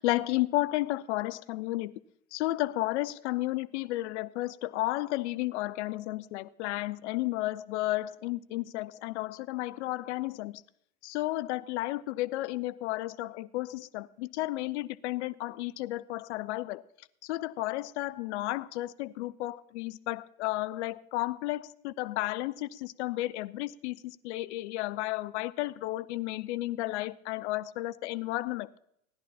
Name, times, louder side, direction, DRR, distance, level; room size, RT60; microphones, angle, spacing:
voice 1, 0.0-1.9 2.3-10.6 11.0-16.8 17.2-28.7, left 17 dB, 50° left, 17 dB, 0.5 m, -33 dB
16.5 x 10.5 x 4.2 m, 0.74 s
figure-of-eight pair, 95°, 45 cm